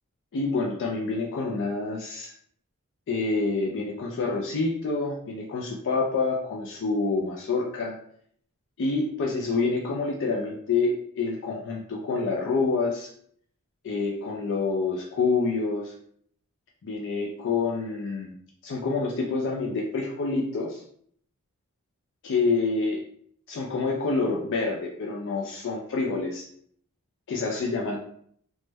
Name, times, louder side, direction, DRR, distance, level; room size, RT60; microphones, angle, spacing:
voice 1, 0.3-2.3 3.1-8.0 8.8-13.1 13.8-15.9 16.8-18.3 18.6-20.8 22.2-23.0 23.5-26.4 27.3-28.0, left 3 dB, 55° left, 0 dB, 0.4 m, -27 dB
3.1 x 2.1 x 3.3 m, 0.63 s
head